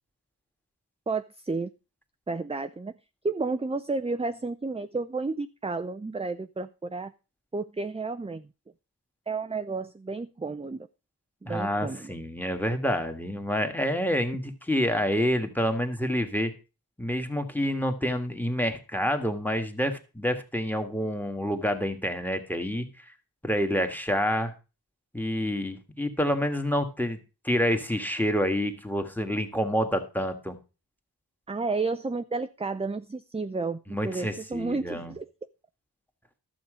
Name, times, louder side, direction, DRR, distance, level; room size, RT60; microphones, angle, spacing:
voice 1, 1.1-1.7 2.3-2.9 3.2-7.1 7.5-8.5 9.3-10.9 11.4-12.1 31.5-35.3, right 3 dB, 15° right, 11 dB, 0.4 m, -31 dB
voice 2, 11.4-16.5 17.0-22.9 23.4-24.5 25.1-27.2 27.4-30.6 33.9-35.1, equal, 5° left, 7 dB, 1.7 m, -28 dB
12.0 x 7.1 x 5.0 m, 0.31 s
wide cardioid pair, 65°, 40 cm